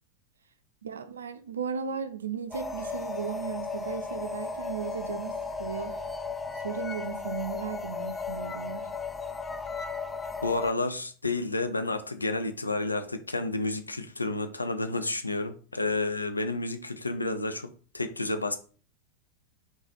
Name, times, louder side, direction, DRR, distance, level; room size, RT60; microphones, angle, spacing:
voice 1, 0.8-6.0 6.6-8.9, right 7 dB, 70° right, 0.5 m, -36 dB
sound 1, 2.5-10.7, left 4 dB, 15° left, 0.3 m, -35 dB
voice 2, 10.4-17.7 17.9-18.6, left 2 dB, 80° left, 0.5 m, -30 dB
3.9 x 2.3 x 4.3 m
figure-of-eight pair, 90°, 0 cm